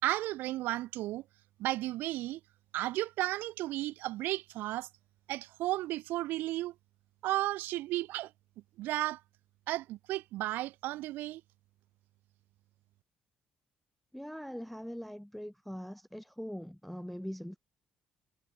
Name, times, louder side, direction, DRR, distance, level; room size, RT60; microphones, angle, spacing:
voice 1, 0.0-1.2 1.6-2.4 2.7-4.9 5.3-6.7 7.2-8.3 8.8-9.2 9.7-11.4, right 16 dB, 80° right, 0.4 m, -33 dB
voice 2, 14.1-17.6, equal, ahead, 0.3 m, -42 dB
supercardioid pair, 65°, 3 cm